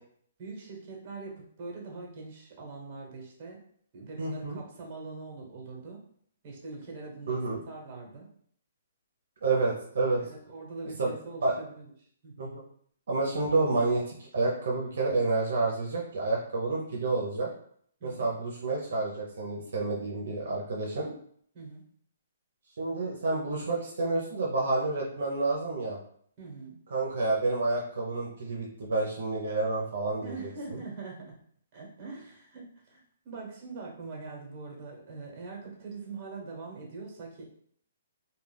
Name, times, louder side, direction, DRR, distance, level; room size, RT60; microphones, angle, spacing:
voice 1, 0.4-3.6 3.9-6.0 6.4-7.4 7.7-8.3 10.2-11.9 12.2-12.4 18.0-18.2 21.5-21.8 26.4-26.8 30.2-31.3 31.7-37.4, right 3 dB, 35° right, -1 dB, 1.1 m, -42 dB
voice 2, 4.2-4.6 7.3-7.6 9.4-10.2 11.0-11.1 11.4-11.5 12.4-12.6 13.1-17.5 18.0-21.1 22.8-26.0 26.9-30.3 30.7-30.8, right 3 dB, 70° right, -3 dB, 0.7 m, -29 dB
2.3 x 2.3 x 3.4 m, 0.62 s
hypercardioid pair, 150°, 0 cm